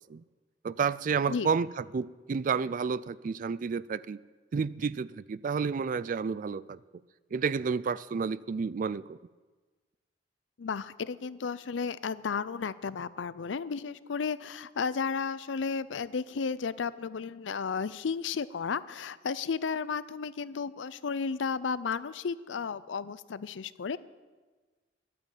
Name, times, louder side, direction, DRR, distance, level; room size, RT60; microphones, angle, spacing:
voice 1, 0.6-4.2 4.5-6.8 7.3-9.2, right 5 dB, 45° right, 19 dB, 0.3 m, -30 dB
voice 2, 10.6-24.0, left 5 dB, 85° left, 17 dB, 0.5 m, -33 dB
11.5 x 8.6 x 9.0 m, 1.3 s
head